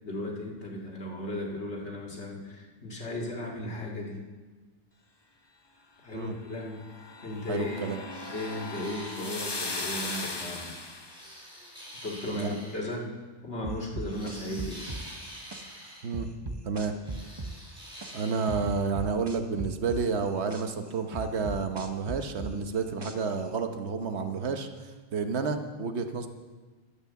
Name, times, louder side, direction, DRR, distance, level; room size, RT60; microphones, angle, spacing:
voice 1, 0.0-4.2 6.0-6.8 7.2-7.9 8.3-10.8 12.0-13.1 13.4-14.9, left 1 dB, 85° left, -1 dB, 2.4 m, -36 dB
sound 1, 6.6-11.3, left 3 dB, 25° left, 0.8 m, -38 dB
voice 2, 7.5-8.0 12.4-12.5 16.0-16.3 16.6-17.0 18.1-26.3, right 5 dB, 80° right, 7 dB, 1.3 m, -30 dB
sound 2, 8.1-9.7 11.1-12.8 14.1-16.1 17.0-18.7, equal, 5° right, 5.2 m, -46 dB
sound 3, 13.6-15.6 16.1-18.1 18.5-20.6 21.1-23.4, right 2 dB, 25° right, 0.8 m, -37 dB
11.5 x 8.7 x 6.9 m, 1.3 s
omnidirectional pair, 1.1 m